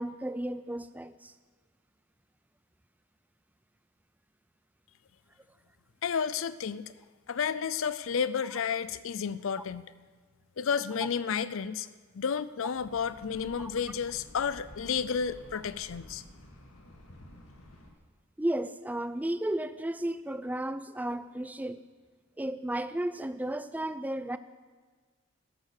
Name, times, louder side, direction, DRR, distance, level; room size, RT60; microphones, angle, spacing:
voice 1, 0.0-1.3 13.6-13.7 18.4-21.8 22.4-24.4, right 1 dB, 5° right, 13 dB, 0.4 m, -33 dB
voice 2, 6.0-6.8 7.3-9.9 10.6-11.9 12.1-16.2, left 6 dB, 60° left, 16 dB, 0.5 m, -31 dB
sound 1, 12.7-17.9, left 1 dB, 80° left, 2.2 m, -51 dB
13.0 x 11.0 x 6.6 m, 1.5 s
head